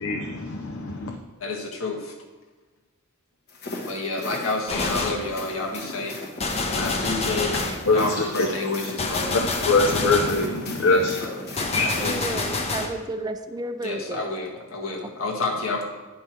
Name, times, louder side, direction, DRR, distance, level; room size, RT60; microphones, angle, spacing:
voice 1, 0.0-1.2 6.8-7.0 7.9-8.5 9.3-9.4 9.7-11.2 11.7-11.9, left 3 dB, 70° left, 2 dB, 0.7 m, -23 dB
voice 2, 1.4-2.1 3.8-7.6 7.9-9.4 10.9-11.4 11.8-12.4 13.8-15.9, left 2 dB, 85° left, 0 dB, 1.5 m, -30 dB
sound 1, 3.5-12.6, left 2 dB, 50° left, 1.3 m, -37 dB
Gunshot gunfire, 4.7-5.3 6.4-7.9 9.0-10.4 11.6-13.0, left 3 dB, 30° left, 0.7 m, -27 dB
voice 3, 7.7-8.0 12.0-14.3, right 1 dB, 20° right, 8 dB, 0.4 m, -32 dB
9.7 x 5.5 x 4.5 m, 1.3 s
head